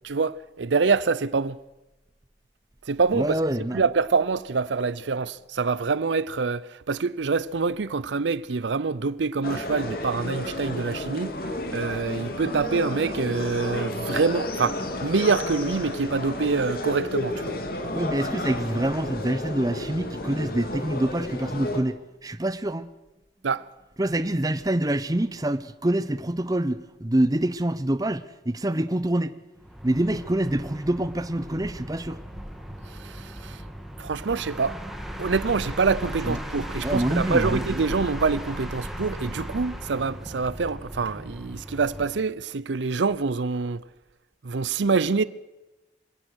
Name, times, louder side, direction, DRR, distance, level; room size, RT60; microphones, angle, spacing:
voice 1, 0.0-1.6 2.9-3.4 3.7-17.6 23.4-23.6 33.0-33.6 34.0-34.7 35.2-43.8 44.4-45.2, right 4 dB, 85° right, 0.6 m, -26 dB
voice 2, 3.1-3.8 17.9-22.9 24.0-29.4 29.8-32.2 36.2-36.4 36.8-37.8, right 1 dB, 20° right, 0.8 m, -26 dB
sound 1, 9.4-21.8, left 1 dB, 55° left, 2.4 m, -32 dB
sound 2, 29.6-42.3, equal, ahead, 2.4 m, -36 dB
25.5 x 17.5 x 6.4 m
head